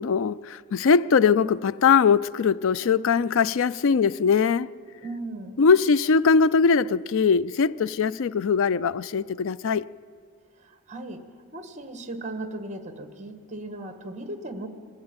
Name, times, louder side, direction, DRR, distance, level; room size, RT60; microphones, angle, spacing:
voice 1, 0.0-4.7 5.6-9.9, left 5 dB, 60° left, 0.4 m, -21 dB
voice 2, 5.0-5.6 10.9-11.2 11.5-14.7, right 2 dB, 35° right, 1.4 m, -36 dB
21.0 x 15.0 x 8.9 m
head